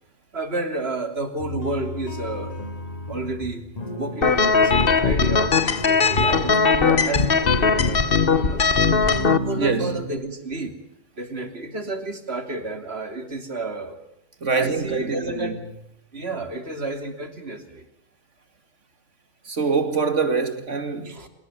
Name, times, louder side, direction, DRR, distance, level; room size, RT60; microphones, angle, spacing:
voice 1, 0.3-2.6 3.1-8.1 8.3-8.6 9.4-10.8 11.2-14.0 14.6-15.6 16.1-17.9 21.0-21.3, right 2 dB, 55° right, 3.5 m, -31 dB
sound 1, 1.4-10.0, right 1 dB, 35° left, 2.9 m, -33 dB
sound 2, 4.2-9.4, left 5 dB, 50° left, 1.5 m, -19 dB
voice 2, 9.6-9.9 14.4-15.5 19.4-21.2, right 4 dB, 80° right, 2.8 m, -24 dB
28.0 x 18.5 x 9.4 m
omnidirectional pair, 1.2 m